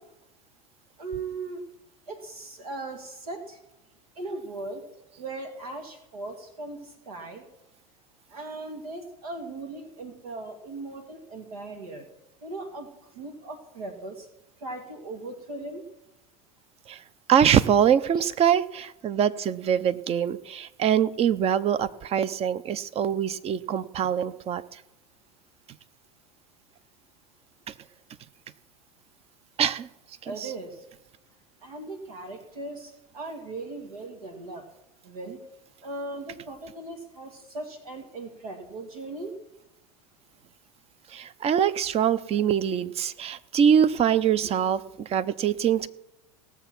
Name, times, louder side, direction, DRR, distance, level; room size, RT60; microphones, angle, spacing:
voice 1, 1.0-1.6 2.1-3.6 4.2-4.8 5.2-7.4 8.3-12.1 12.4-12.9 13.2-14.3 14.6-15.9 18.4-18.5 30.3-30.7 31.6-34.6 35.0-35.4 35.8-39.3 44.4-44.5, right 2 dB, 85° right, 5 dB, 2.1 m, -38 dB
voice 2, 17.3-24.8 29.6-29.9 30.2-30.5 41.1-45.9, right 8 dB, 35° right, 16 dB, 0.7 m, -24 dB
18.0 x 7.1 x 6.0 m, 0.90 s
hypercardioid pair, 100°, 18 cm